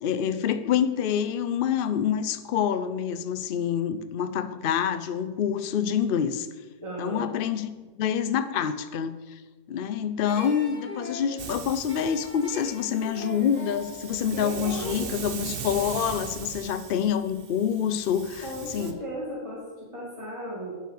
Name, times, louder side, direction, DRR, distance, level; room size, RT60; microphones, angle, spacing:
voice 1, 0.0-6.5 7.0-9.4 9.7-19.0, left 8 dB, 85° left, 10 dB, 0.4 m, -27 dB
voice 2, 6.8-7.3 14.3-15.2 18.4-19.6 19.9-20.7, equal, 20° right, -5 dB, 2.2 m, -35 dB
sound 1, 10.3-15.3, left 2 dB, 5° left, 2.7 m, -41 dB
Hiss, 11.4-18.9, right 6 dB, 45° right, 0.9 m, -39 dB
9.9 x 6.6 x 6.4 m, 1.3 s
omnidirectional pair, 1.7 m